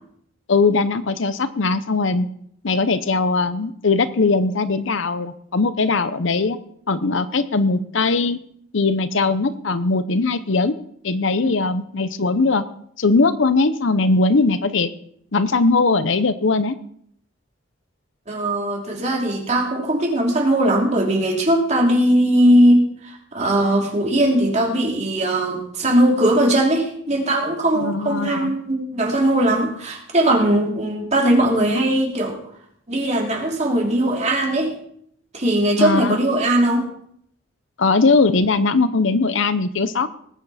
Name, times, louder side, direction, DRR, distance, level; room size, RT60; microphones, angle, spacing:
voice 1, 0.5-2.3 2.6-6.6 6.9-8.4 8.7-10.8 11.0-12.6 13.0-14.9 15.3-16.7 27.8-28.5 35.8-36.2 37.8-40.1, left 3 dB, 65° left, 13 dB, 0.8 m, -20 dB
voice 2, 18.3-32.4 32.9-34.7 35.3-36.9, right 1 dB, 35° right, 0 dB, 3.0 m, -19 dB
19.5 x 9.2 x 4.2 m, 0.67 s
head